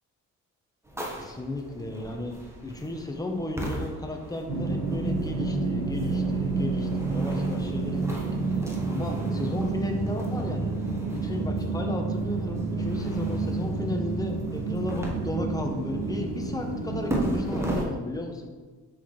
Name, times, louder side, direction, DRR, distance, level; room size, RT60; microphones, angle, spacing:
sound 1, 0.8-17.8, right 1 dB, 10° right, 1.2 m, -38 dB
voice 1, 0.9-2.4 2.6-8.6 8.9-10.7 11.1-18.5, left 1 dB, 10° left, 3 dB, 1.0 m, -34 dB
sound 2, 4.5-17.6, right 3 dB, 85° right, 2.0 m, -29 dB
6.3 x 5.5 x 3.2 m, 1.3 s
cardioid pair, 90°, 30 cm